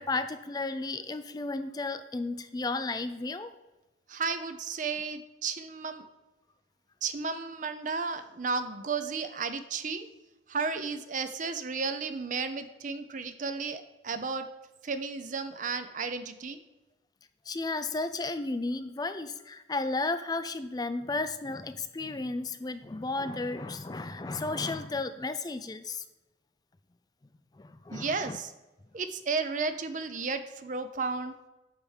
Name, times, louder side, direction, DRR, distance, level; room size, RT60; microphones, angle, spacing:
voice 1, 0.0-3.5 17.5-26.0 27.6-28.4, left 3 dB, 20° left, 11 dB, 0.4 m, -33 dB
voice 2, 4.1-6.0 7.0-10.1 10.5-14.5 14.8-16.6 27.9-28.5 28.9-31.4, right 4 dB, 40° right, 10 dB, 0.6 m, -33 dB
9.7 x 3.5 x 7.1 m, 1.1 s
head